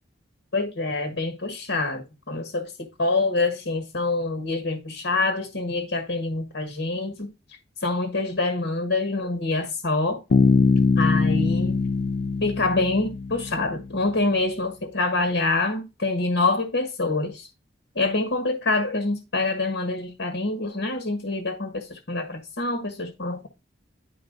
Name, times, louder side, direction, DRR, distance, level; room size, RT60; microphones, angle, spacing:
voice 1, 0.5-2.7 3.0-7.3 7.8-10.2 11.0-11.8 12.4-17.5 17.9-23.5, left 3 dB, 85° left, 1.5 m, -26 dB
Bass guitar, 10.3-14.0, left 4 dB, 60° left, 0.4 m, -22 dB
11.0 x 4.4 x 3.9 m
head